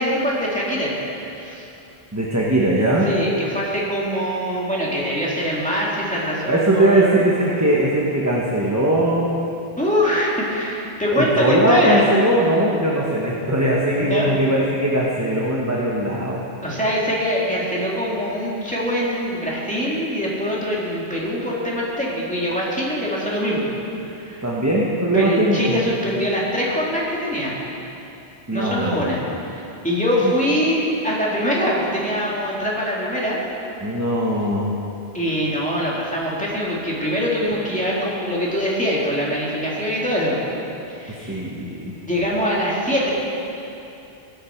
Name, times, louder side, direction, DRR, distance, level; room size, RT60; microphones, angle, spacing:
voice 1, 0.0-1.7 3.1-7.3 9.8-12.1 14.0-14.3 16.6-23.7 24.1-24.4 25.1-27.6 28.5-29.2 29.5-33.4 35.1-40.4 41.0-41.5 42.1-43.1, equal, 5° left, -6 dB, 2.5 m, -23 dB
voice 2, 2.1-3.1 6.5-9.3 11.1-16.4 24.4-25.6 28.5-29.1 30.2-30.3 33.8-34.7 41.3-41.9, right 1 dB, 15° right, -4 dB, 1.1 m, -20 dB
19.5 x 8.7 x 4.5 m, 2.9 s
omnidirectional pair, 1.1 m